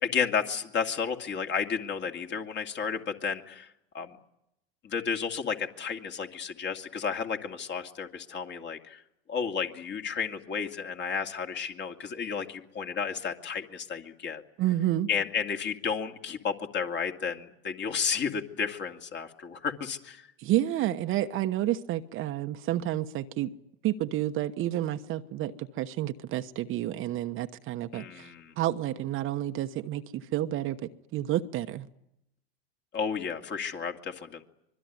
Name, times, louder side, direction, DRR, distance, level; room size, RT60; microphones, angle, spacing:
voice 1, 0.0-3.7 3.9-4.2 4.8-9.0 9.3-14.4 15.1-20.3 27.9-28.5 32.9-34.4, left 6 dB, 35° left, 2.5 m, -32 dB
voice 2, 14.6-15.1 20.4-23.5 23.8-28.3 28.6-30.8 31.1-31.9, right 13 dB, 40° right, 1.1 m, -30 dB
25.0 x 22.5 x 9.5 m
hypercardioid pair, 105°, 32 cm